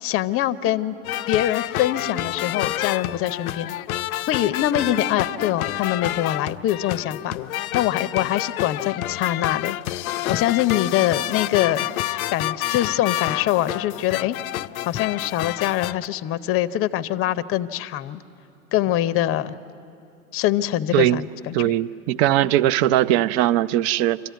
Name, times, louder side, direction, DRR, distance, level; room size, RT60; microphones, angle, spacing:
voice 1, 0.0-1.0 1.3-3.8 4.3-7.4 7.7-10.0 10.3-11.9 12.3-14.4 14.8-18.2 18.7-19.6 20.3-21.7, left 13 dB, 30° left, 15 dB, 0.6 m, -24 dB
sound 1, 1.0-16.1, left 15 dB, 75° left, 0.5 m, -28 dB
voice 2, 21.5-24.2, right 13 dB, 50° right, 16 dB, 0.6 m, -20 dB
25.5 x 14.0 x 9.3 m, 2.9 s
hypercardioid pair, 105°, 43 cm